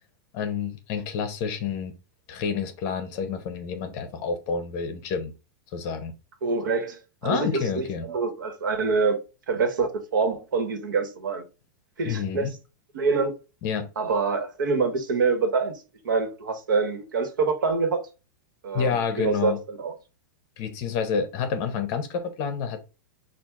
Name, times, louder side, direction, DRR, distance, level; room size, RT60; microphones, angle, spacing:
voice 1, 0.3-1.9 2.3-5.3 5.7-6.1 7.2-8.1 12.0-12.5 13.6-13.9 18.7-19.6 20.6-22.8, left 6 dB, 30° left, 0.6 m, -29 dB
voice 2, 6.4-9.2 9.5-11.4 12.0-12.5 12.9-13.3 14.0-18.0 18.6-18.9 19.2-19.9, right 4 dB, 85° right, 1.4 m, -25 dB
6.0 x 2.4 x 3.5 m
supercardioid pair, 175°, 10 cm